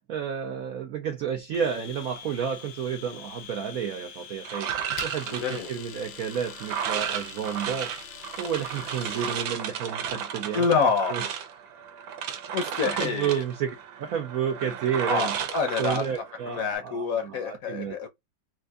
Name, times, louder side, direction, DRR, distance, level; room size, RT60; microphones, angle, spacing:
voice 1, 0.1-7.9 8.4-10.7 11.1-11.2 12.5-12.6 12.8-15.3 15.8-17.9, right 8 dB, 70° right, 0.8 m, -31 dB
Domestic sounds home sounds, 1.5-9.5, left 8 dB, 85° left, 1.6 m, -44 dB
sound 1, 4.4-16.8, right 8 dB, 90° right, 1.5 m, -34 dB
voice 2, 5.3-5.7 10.5-11.2 12.5-13.4 15.1-16.0 16.5-18.1, left 5 dB, 60° left, 1.0 m, -27 dB
4.4 x 2.5 x 2.3 m
omnidirectional pair, 2.1 m